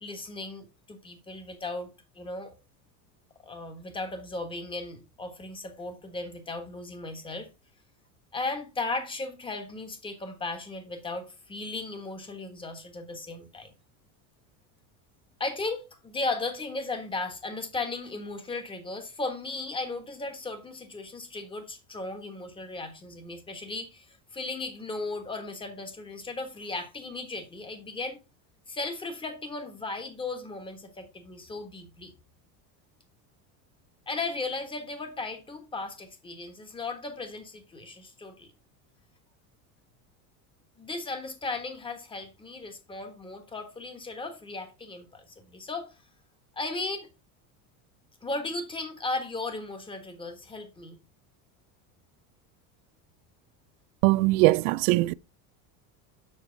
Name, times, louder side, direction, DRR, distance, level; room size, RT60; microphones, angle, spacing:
voice 1, 0.0-2.5 3.4-7.5 8.3-13.7 15.4-28.2 28.7-32.1 34.1-38.5 40.8-45.9 46.5-47.1 48.2-51.0, left 3 dB, 10° left, 1.3 m, -36 dB
voice 2, 54.0-55.1, right 21 dB, 80° right, 0.5 m, -21 dB
7.4 x 6.0 x 3.9 m
cardioid pair, 155°, 42 cm